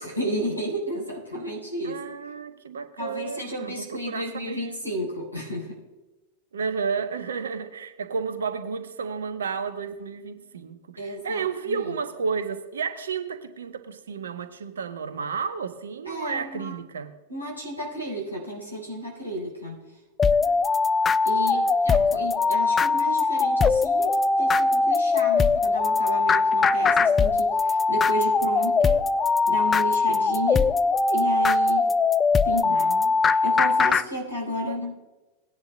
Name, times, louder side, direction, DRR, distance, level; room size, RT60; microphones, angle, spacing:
voice 1, 0.0-2.0 3.0-5.8 11.0-11.9 16.0-16.7 17.3-19.8 21.2-29.0 29.5-30.7 31.1-31.9 32.4-32.9 33.2-34.9, equal, 90° left, 4.1 m, -32 dB
voice 2, 1.8-4.8 6.5-17.1 20.3-20.6 21.5-22.2 32.5-33.2 34.7-34.9, right 5 dB, 65° right, 1.0 m, -32 dB
sound 1, 20.2-34.0, left 4 dB, 20° left, 0.4 m, -21 dB
19.0 x 10.0 x 2.3 m
figure-of-eight pair, 90°, 0 cm